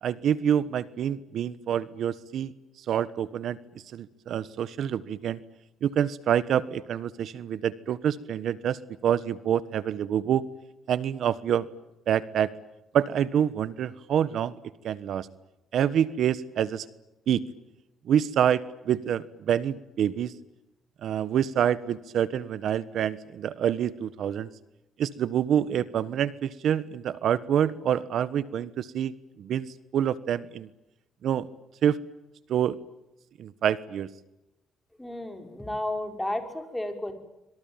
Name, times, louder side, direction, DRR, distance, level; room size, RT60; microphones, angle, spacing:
voice 1, 0.0-2.5 2.9-3.6 3.9-5.4 5.8-10.4 10.9-11.7 12.1-12.5 12.9-14.5 14.8-15.3 15.7-16.9 17.3-17.4 18.0-20.3 21.0-24.5 25.0-29.1 29.4-30.7 31.2-31.5 31.8-32.0 32.5-32.8 33.4-34.1, right 9 dB, 70° right, 16 dB, 1.2 m, -27 dB
voice 2, 35.0-37.1, left 1 dB, 5° left, 6 dB, 5.6 m, -32 dB
26.0 x 24.5 x 9.1 m, 0.93 s
cardioid pair, 90°, 0 cm